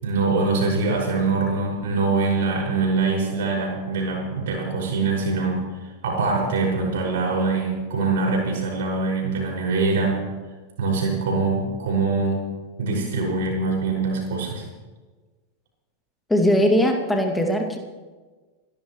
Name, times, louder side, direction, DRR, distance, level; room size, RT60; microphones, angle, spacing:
voice 1, 0.0-5.7 6.0-10.3 10.8-12.4 12.8-14.6, right 3 dB, 55° right, -2 dB, 6.1 m, -23 dB
voice 2, 16.3-17.8, equal, 5° left, 3 dB, 2.3 m, -20 dB
29.5 x 12.5 x 3.2 m, 1.3 s
figure-of-eight pair, 90°, 0 cm